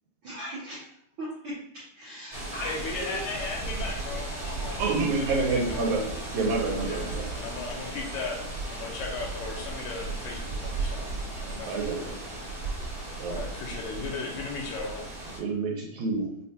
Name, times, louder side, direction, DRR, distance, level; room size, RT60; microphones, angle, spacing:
voice 1, 0.2-0.9 1.2-3.3 15.8-15.9, right 1 dB, 65° right, -9 dB, 1.3 m, -39 dB
sound 1, 2.3-15.4, right 2 dB, 40° right, 1.1 m, -35 dB
voice 2, 2.6-6.0 6.8-12.2 13.3-15.0, left 4 dB, 80° left, 0 dB, 1.9 m, -37 dB
voice 3, 4.8-6.0 6.3-7.3 11.7-12.0 13.2-13.4 15.4-16.3, right 3 dB, 85° right, -1 dB, 2.1 m, -28 dB
5.4 x 2.2 x 2.8 m, 0.70 s
omnidirectional pair, 3.4 m